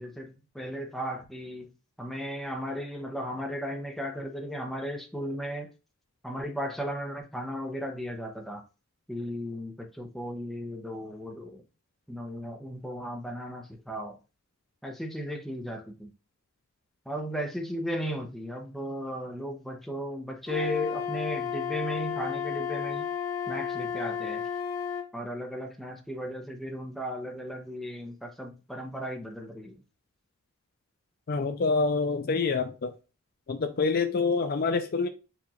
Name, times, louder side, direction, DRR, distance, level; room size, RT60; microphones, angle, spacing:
voice 1, 0.0-1.7 2.0-5.7 6.2-8.6 9.1-11.6 12.1-14.2 14.8-16.1 17.1-23.1 23.5-24.4 25.1-29.7, equal, ahead, 0.7 m, -35 dB
Wind instrument woodwind instrument, 20.5-25.1, left 7 dB, 65° left, 1.1 m, -32 dB
voice 2, 31.3-32.9 33.5-35.1, left 4 dB, 45° left, 0.4 m, -26 dB
4.7 x 2.4 x 4.0 m
head